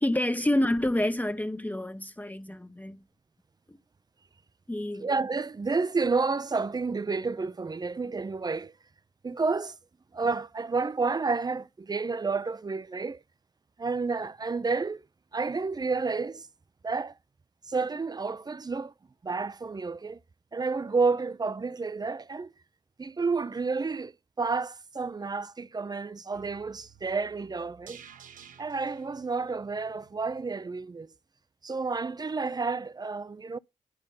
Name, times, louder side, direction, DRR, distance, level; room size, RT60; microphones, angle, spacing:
voice 1, 0.0-3.0 3.7-3.8 4.7-5.1, left 1 dB, 10° left, 0.7 m, -28 dB
voice 2, 5.0-8.7 9.2-9.8 10.1-13.2 13.8-15.0 15.3-16.5 16.8-17.1 17.6-18.9 19.2-20.2 20.5-22.5 23.0-24.1 24.4-28.0 28.6-31.1 31.6-33.6, right 4 dB, 30° right, 0.5 m, -30 dB
sound 1, 26.3-30.5 30.9-31.0, right 8 dB, 80° right, 0.8 m, -54 dB
9.5 x 5.3 x 5.3 m
supercardioid pair, 40°, 14 cm